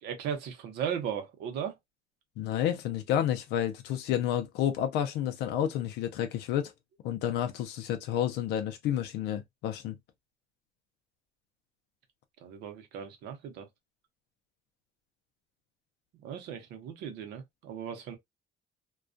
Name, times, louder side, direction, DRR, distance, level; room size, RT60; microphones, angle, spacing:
voice 1, 0.0-1.8 12.4-13.7 16.2-18.2, right 8 dB, 85° right, 0.8 m, -37 dB
voice 2, 2.4-6.7 7.0-9.9, left 10 dB, 85° left, 0.4 m, -30 dB
2.3 x 2.2 x 2.4 m
cardioid pair, 110°, 17 cm